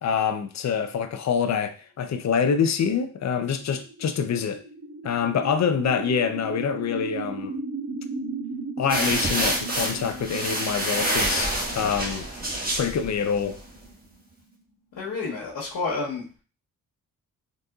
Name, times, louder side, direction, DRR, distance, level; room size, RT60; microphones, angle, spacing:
voice 1, 0.0-4.6 5.0-7.5 8.8-12.3 12.7-13.6, left 7 dB, 55° left, 0.6 m, -26 dB
sound 1, 3.1-14.5, right 3 dB, 60° right, 1.6 m, -37 dB
sound 2, 8.9-13.6, right 1 dB, 25° right, 1.5 m, -27 dB
voice 2, 14.9-16.2, left 4 dB, 80° left, 1.1 m, -29 dB
4.0 x 3.7 x 2.3 m
cardioid pair, 80°, 33 cm